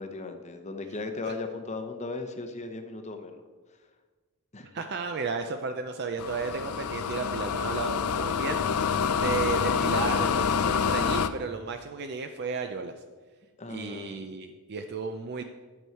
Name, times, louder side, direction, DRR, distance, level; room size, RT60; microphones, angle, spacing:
voice 1, 0.0-3.4 4.5-4.7 13.6-14.2, left 3 dB, 30° left, 6 dB, 0.8 m, -37 dB
voice 2, 4.7-8.6 9.1-12.9 13.7-15.4, right 4 dB, 50° right, 7 dB, 0.5 m, -33 dB
sound 1, 6.2-11.3, left 6 dB, 85° left, 0.5 m, -27 dB
11.0 x 6.3 x 4.5 m, 1.4 s
head